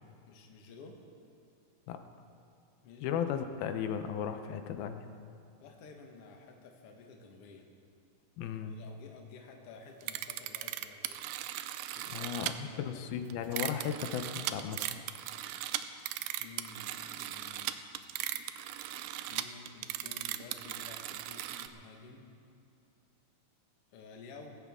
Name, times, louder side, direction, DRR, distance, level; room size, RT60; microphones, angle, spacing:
voice 1, 0.2-1.0 2.8-3.1 5.6-7.6 8.6-11.2 11.9-12.4 12.6-13.0 16.4-17.8 19.3-22.2 23.9-24.6, left 4 dB, 55° left, 2 dB, 1.8 m, -52 dB
voice 2, 3.0-5.1 8.4-8.8 12.1-14.9, left 8 dB, 85° left, 8 dB, 2.6 m, -35 dB
sound 1, 10.0-12.5 13.3-21.7, right 13 dB, 85° right, 2.4 m, -38 dB
20.0 x 15.5 x 3.6 m, 2.5 s
omnidirectional pair, 4.2 m